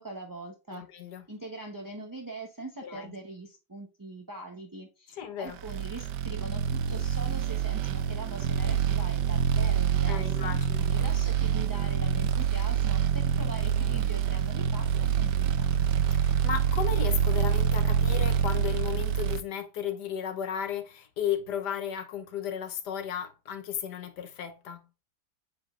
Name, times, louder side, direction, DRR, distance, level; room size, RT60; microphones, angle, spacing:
voice 1, 0.0-0.8 1.3-14.9 15.2-15.7, right 2 dB, 20° right, 0.5 m, -42 dB
voice 2, 0.7-1.2 2.8-3.1 5.2-5.6 10.1-10.8 16.1-24.8, left 8 dB, 75° left, 1.5 m, -34 dB
sound 1, 5.6-19.4, right 8 dB, 85° right, 1.2 m, -26 dB
7.9 x 5.0 x 2.4 m
omnidirectional pair, 1.8 m